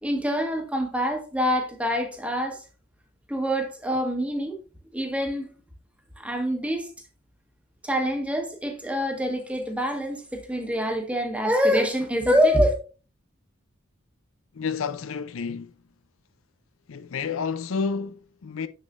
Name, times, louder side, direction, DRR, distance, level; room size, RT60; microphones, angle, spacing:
voice 1, 0.0-2.6 3.3-4.6 4.9-5.5 6.2-6.9 7.8-12.8, equal, 5° right, 1.3 m, -25 dB
voice 2, 14.5-15.8 16.9-18.7, left 5 dB, 70° left, 0.4 m, -30 dB
7.3 x 6.5 x 2.5 m
head